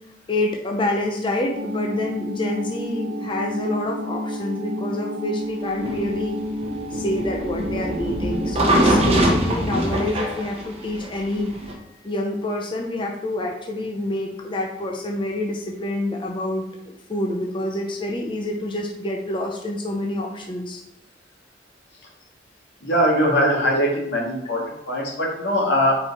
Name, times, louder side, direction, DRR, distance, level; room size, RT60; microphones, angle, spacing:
voice 1, 0.3-6.4 6.9-20.8, left 1 dB, 30° left, 1 dB, 0.6 m, -27 dB
sound 1, 1.5-9.2, equal, 90° right, 1.0 m, -30 dB
sound 2, 5.8-11.7, right 1 dB, 35° right, 1.0 m, -23 dB
voice 2, 22.8-26.0, equal, 80° left, -4 dB, 2.1 m, -21 dB
4.9 x 4.7 x 4.2 m, 0.88 s
head